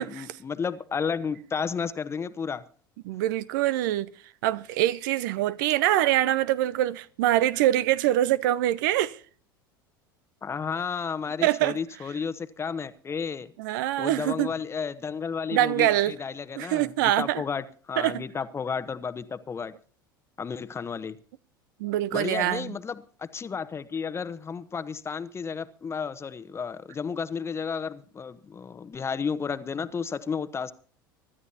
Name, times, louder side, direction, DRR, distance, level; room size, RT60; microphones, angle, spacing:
voice 1, 0.0-2.6 10.4-13.5 14.0-19.7 20.4-21.2 22.1-30.7, left 6 dB, 25° left, 1.1 m, -32 dB
voice 2, 3.1-4.1 4.4-9.2 11.4-11.8 13.6-14.5 15.5-16.1 16.6-17.4 18.0-18.2 21.8-22.7, right 13 dB, 60° right, 0.6 m, -24 dB
25.0 x 12.5 x 2.8 m
figure-of-eight pair, 75°, 12 cm